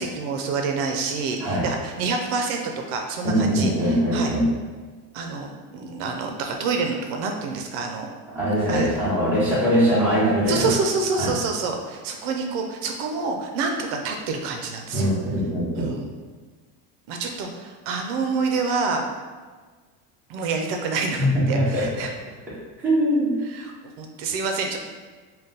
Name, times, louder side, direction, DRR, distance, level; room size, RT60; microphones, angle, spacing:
voice 1, 0.0-4.3 5.1-8.1 8.7-8.9 10.5-15.1 15.8-16.1 17.1-19.0 20.3-22.1 23.5-24.8, right 4 dB, 70° right, 3 dB, 0.5 m, -27 dB
voice 2, 3.2-4.5 8.3-10.7 11.2-11.3 14.9-15.9 21.2-21.9 22.8-23.4, equal, 5° right, -9 dB, 0.8 m, -21 dB
3.8 x 2.2 x 3.9 m, 1.4 s
cardioid pair, 175°, 37 cm